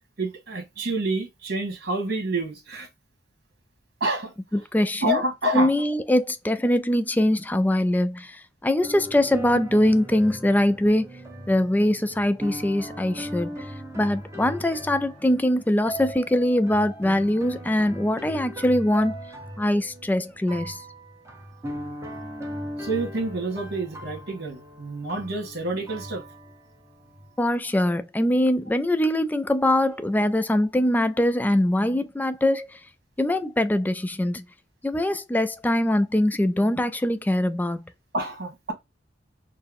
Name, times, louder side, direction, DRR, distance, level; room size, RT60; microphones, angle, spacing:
voice 1, 0.2-2.9 4.0-4.3 5.0-5.7 22.8-26.2 38.1-38.7, right 2 dB, 60° right, 1.7 m, -28 dB
voice 2, 4.7-5.2 5.5-11.1 11.5-13.7 14.0-19.1 19.6-20.8 27.4-32.8 33.2-34.4 34.8-37.9, left 1 dB, 10° left, 0.3 m, -22 dB
sound 1, 8.8-27.4, equal, 15° right, 0.9 m, -39 dB
4.4 x 2.1 x 3.5 m
head